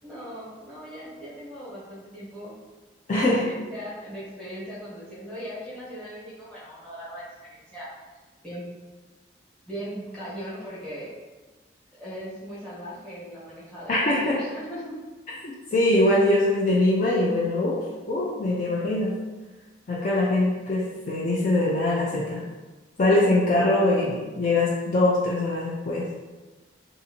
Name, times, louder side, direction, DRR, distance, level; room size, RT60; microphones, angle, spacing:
voice 1, 0.0-2.5 3.1-7.2 7.5-7.9 8.4-8.7 9.7-11.1 11.9-14.9 16.1-16.4, equal, 5° left, -10 dB, 1.0 m, -39 dB
voice 2, 3.1-3.4 13.9-14.4 15.4-17.8 18.1-19.1 19.9-22.4 23.0-26.1, left 1 dB, 45° left, -5 dB, 0.4 m, -22 dB
2.6 x 2.5 x 2.7 m, 1.3 s
head